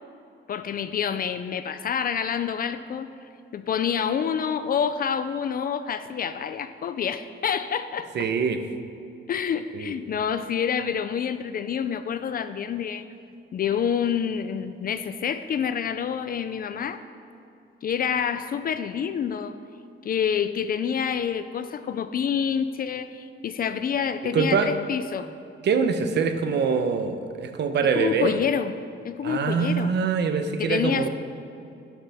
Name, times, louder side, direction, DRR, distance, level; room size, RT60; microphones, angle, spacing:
voice 1, 0.5-3.1 3.5-8.1 9.3-13.0 13.5-17.0 17.8-19.6 20.0-25.3 27.9-28.7 29.0-30.0 30.6-31.1, left 7 dB, 45° left, 11 dB, 0.4 m, -27 dB
voice 2, 8.1-8.6 9.7-9.9 24.3-24.7 25.6-28.3 29.2-31.1, right 5 dB, 55° right, 8 dB, 0.8 m, -24 dB
11.5 x 11.0 x 3.5 m, 2.6 s
wide cardioid pair, 155°, 20 cm